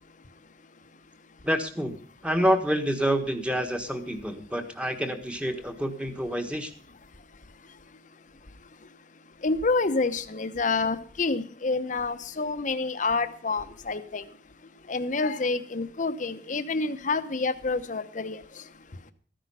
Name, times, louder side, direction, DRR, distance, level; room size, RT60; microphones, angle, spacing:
voice 1, 1.4-2.0 2.2-6.7, equal, 5° right, 1.4 m, -27 dB
voice 2, 9.4-14.2 14.9-18.4, left 3 dB, 45° left, 0.9 m, -28 dB
14.0 x 10.0 x 5.6 m
head